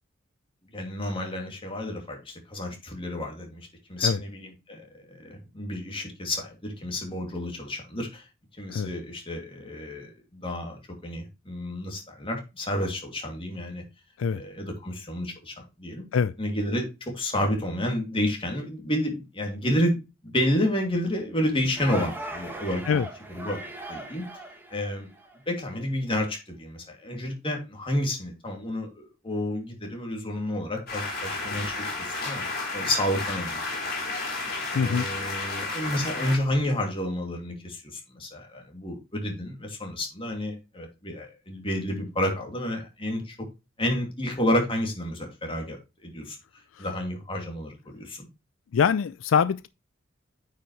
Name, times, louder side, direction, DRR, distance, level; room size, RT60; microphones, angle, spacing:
voice 1, 0.7-8.2 8.6-13.8 14.3-16.1 16.4-20.0 20.2-23.6 23.9-24.2 24.7-25.1 25.5-32.4 32.7-33.6 34.7-43.3 43.8-45.8 46.0-46.4 46.8-48.2, left 1 dB, 30° left, 2.6 m, -30 dB
sound 1, 21.8-25.4, right 2 dB, 10° right, 1.8 m, -38 dB
sound 2, 30.9-36.4, left 3 dB, 55° left, 3.7 m, -32 dB
voice 2, 34.8-35.1 48.7-49.7, left 6 dB, 80° left, 0.4 m, -23 dB
9.0 x 5.6 x 3.2 m
head